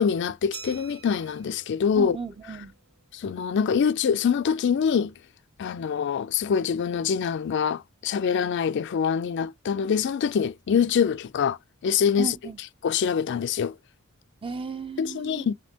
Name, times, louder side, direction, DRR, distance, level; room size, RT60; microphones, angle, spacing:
voice 1, 0.0-2.2 3.1-5.1 5.6-11.6 11.8-12.4 12.8-13.7 15.0-15.5, left 7 dB, 55° left, 0.3 m, -24 dB
Glass, 0.5-3.0, right 6 dB, 50° right, 1.4 m, -46 dB
voice 2, 1.9-2.7 12.2-12.6 14.4-15.5, right 4 dB, 25° right, 0.5 m, -34 dB
5.3 x 2.8 x 2.8 m
head